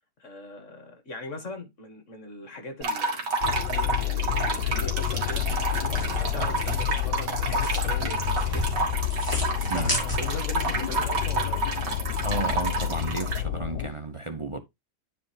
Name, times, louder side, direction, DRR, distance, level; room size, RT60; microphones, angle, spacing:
voice 1, 0.2-3.2 3.9-8.7 9.6-11.6, left 2 dB, 45° left, 2.0 m, -40 dB
sound 1, 2.8-13.4, right 3 dB, 75° right, 2.4 m, -30 dB
sound 2, 3.4-13.9, left 13 dB, 80° left, 1.3 m, -29 dB
sound 3, 5.3-10.6, equal, 10° left, 5.7 m, -35 dB
voice 2, 12.2-14.6, right 3 dB, 35° right, 0.5 m, -33 dB
10.0 x 4.6 x 3.3 m
omnidirectional pair, 1.9 m